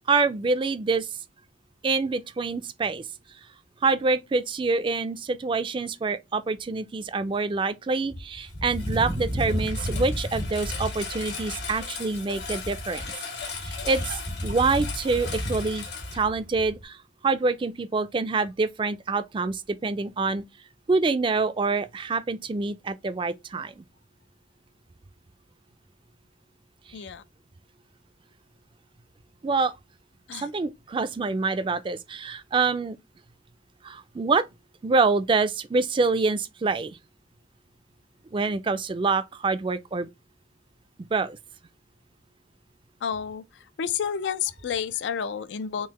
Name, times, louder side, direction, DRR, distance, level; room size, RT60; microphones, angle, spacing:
voice 1, 0.1-1.1 1.8-3.0 3.8-13.1 13.6-15.8 16.1-17.0 17.2-20.4 20.9-23.8 29.4-29.7 30.4-33.0 33.8-34.4 34.8-37.0 38.3-40.1 41.1-41.4, right 4 dB, 30° right, 0.3 m, -26 dB
Engine, 8.1-16.8, left 1 dB, 70° left, 1.5 m, -32 dB
voice 2, 26.9-27.2 30.3-30.4 43.0-43.4 43.8-45.9, left 7 dB, 90° left, 0.4 m, -30 dB
3.8 x 2.8 x 2.8 m
head